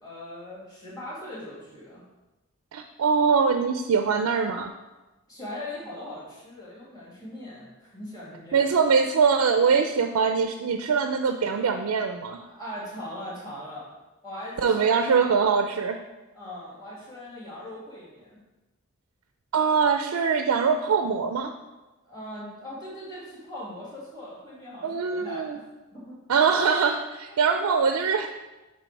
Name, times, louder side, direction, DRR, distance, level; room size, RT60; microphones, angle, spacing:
voice 1, 0.0-2.0 5.3-8.7 12.4-13.9 14.2-15.5 16.3-18.4 22.1-25.7 25.9-26.2 27.3-27.4, left 1 dB, 20° left, -7 dB, 2.2 m, -40 dB
voice 2, 2.7-4.7 8.5-12.4 14.6-16.0 19.5-21.5 24.8-25.6 26.3-28.3, right 5 dB, 80° right, 6 dB, 0.4 m, -23 dB
6.8 x 3.2 x 4.5 m, 1.1 s
head